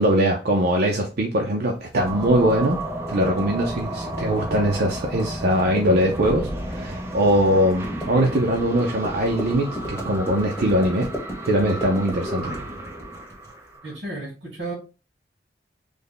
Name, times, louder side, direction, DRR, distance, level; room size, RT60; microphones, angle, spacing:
voice 1, 0.0-2.8 3.1-11.1 11.5-12.5, right 1 dB, 60° right, 0.6 m, -21 dB
sound 1, 1.9-13.5, equal, 15° left, 1.1 m, -36 dB
sound 2, 2.0-14.0, right 1 dB, 15° right, 0.6 m, -33 dB
voice 2, 13.8-14.7, right 2 dB, 75° right, 1.7 m, -33 dB
3.4 x 2.2 x 3.8 m
head